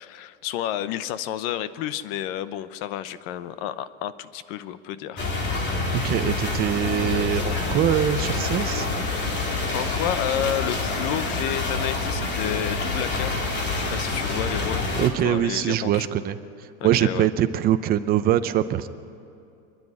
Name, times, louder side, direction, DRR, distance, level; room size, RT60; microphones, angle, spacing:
voice 1, 0.0-5.3 9.2-13.3 13.7-14.9 15.2-16.1 16.8-17.3, left 11 dB, 55° left, 15 dB, 0.8 m, -31 dB
sound 1, 5.2-15.1, left 3 dB, 30° left, 2.4 m, -27 dB
voice 2, 6.0-8.9 15.0-16.4 16.8-18.9, right 11 dB, 25° right, 10 dB, 0.6 m, -23 dB
25.5 x 10.5 x 9.8 m, 2.6 s
supercardioid pair, 160°, 35 cm